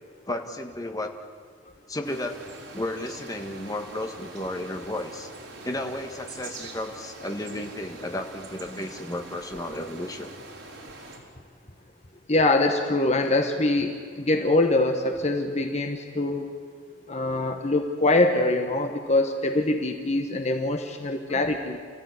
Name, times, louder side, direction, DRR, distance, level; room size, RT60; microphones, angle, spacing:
voice 1, 0.3-1.1 1.9-2.4 2.7-5.3 5.6-10.4 21.3-21.4, left 1 dB, 20° left, 4 dB, 1.7 m, -33 dB
sound 1, 2.0-11.2, right 2 dB, 80° right, 4.7 m, -43 dB
voice 2, 12.3-16.5 17.1-21.8, left 2 dB, 35° left, 5 dB, 1.4 m, -24 dB
29.0 x 15.5 x 9.7 m, 2.1 s
head